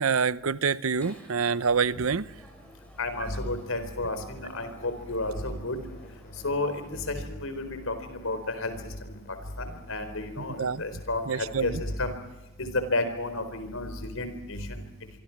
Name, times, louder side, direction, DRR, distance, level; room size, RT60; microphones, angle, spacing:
voice 1, 0.0-2.3 10.6-10.8 11.3-11.7, right 5 dB, 90° right, 0.7 m, -26 dB
sound 1, 1.0-7.1, equal, 5° left, 5.2 m, -55 dB
voice 2, 3.0-5.8 6.4-8.7 9.0-9.2 9.6-12.1 12.6-14.8, left 2 dB, 80° left, 4.3 m, -32 dB
sound 2, 4.6-12.0, left 1 dB, 50° left, 5.5 m, -54 dB
27.0 x 24.0 x 6.0 m
head